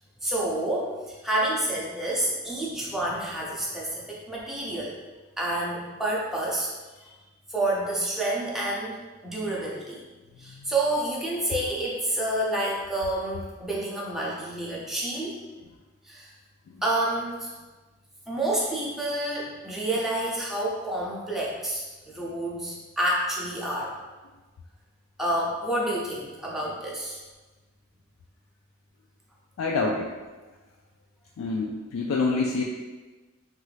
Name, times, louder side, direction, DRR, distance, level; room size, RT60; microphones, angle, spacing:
voice 1, 0.2-4.9 5.4-6.7 7.5-9.0 9.2-10.0 10.4-15.4 16.0-16.3 16.8-17.5 18.3-23.9 25.2-27.2, right 1 dB, ahead, -5 dB, 0.5 m, -29 dB
voice 2, 29.6-30.1 31.4-32.6, left 3 dB, 75° left, -1 dB, 0.3 m, -27 dB
3.0 x 2.4 x 3.1 m, 1.2 s
head